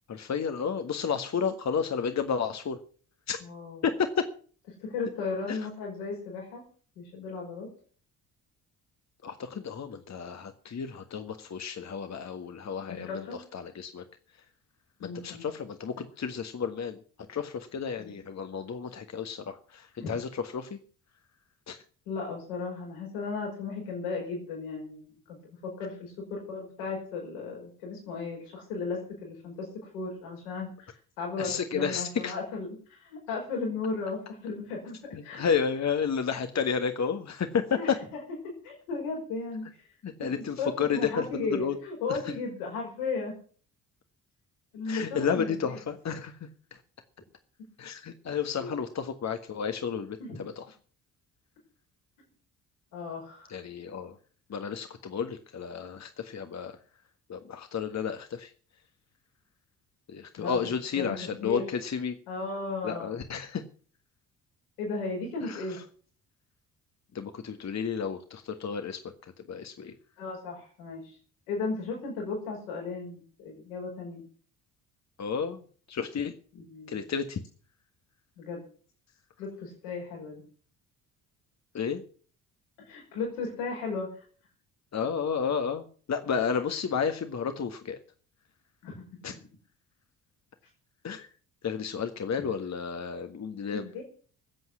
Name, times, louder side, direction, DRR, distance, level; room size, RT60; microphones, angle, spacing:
voice 1, 0.1-2.8 3.3-3.4 3.8-4.1 5.5-5.6 9.2-13.2 13.5-14.0 15.0-17.0 17.3-20.8 21.7-21.8 31.4-32.3 35.1-37.9 40.0-41.2 41.5-41.8 42.1-42.2 44.9-46.5 47.8-50.2 50.6-50.7 53.5-54.1 54.5-56.7 57.3-58.5 60.1-62.1 62.8-63.6 65.5-65.6 67.1-69.0 69.5-69.9 75.2-75.6 75.9-76.3 76.9-77.4 81.7-82.0 84.9-88.0 89.2-89.3 91.0-91.3 91.6-93.9, left 6 dB, 35° left, 7 dB, 1.6 m, -31 dB
voice 2, 3.4-3.9 4.8-6.6 7.0-7.7 12.9-13.4 15.0-15.4 18.0-18.2 20.0-20.1 22.1-35.0 35.2-35.4 37.8-39.6 40.2-43.3 44.7-45.8 48.6-48.7 50.2-50.4 52.9-53.5 60.4-60.6 61.0-61.6 62.3-63.2 64.8-65.8 70.2-71.2 71.5-74.2 76.5-77.1 78.4-78.6 79.4-80.4 82.9-84.2 88.8-88.9 93.7-94.0, left 4 dB, 75° left, -1 dB, 5.5 m, -35 dB
20.0 x 7.9 x 6.3 m, 0.43 s
figure-of-eight pair, 45°, 45 cm